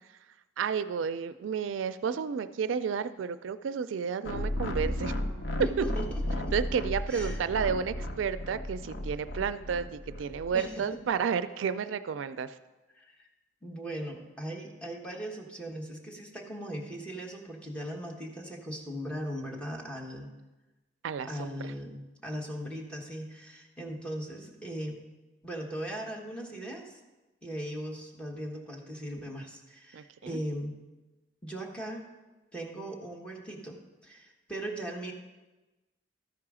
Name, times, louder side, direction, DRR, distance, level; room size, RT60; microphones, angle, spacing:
voice 1, 0.6-5.1 5.8-5.9 6.5-12.6 21.0-21.7 29.9-30.4, right 6 dB, 85° right, 13 dB, 0.4 m, -31 dB
sound 1, 4.2-10.7, left 1 dB, 70° left, 0.8 m, -34 dB
voice 2, 5.6-6.5 7.1-7.4 10.5-10.8 12.9-13.3 13.6-20.3 21.3-25.0 25.4-27.0 27.4-30.7 31.4-32.0 32.5-33.8 34.0-35.1, equal, 5° left, -1 dB, 1.2 m, -39 dB
13.0 x 4.8 x 4.9 m, 1.1 s
head